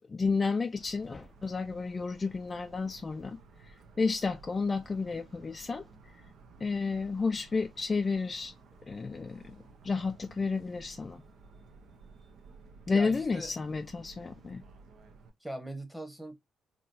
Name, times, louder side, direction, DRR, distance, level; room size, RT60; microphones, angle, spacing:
voice 1, 0.1-3.4 3.7-5.8 6.6-8.5 8.9-9.6 9.8-11.2 12.9-14.6, left 4 dB, 30° left, 0.4 m, -31 dB
Motor vehicle (road) / Siren, 0.8-15.3, right 4 dB, 70° right, 0.8 m, -55 dB
voice 2, 12.9-13.5 15.4-16.3, right 1 dB, 5° right, 1.1 m, -40 dB
3.8 x 3.0 x 2.6 m
cardioid pair, 90°, 0 cm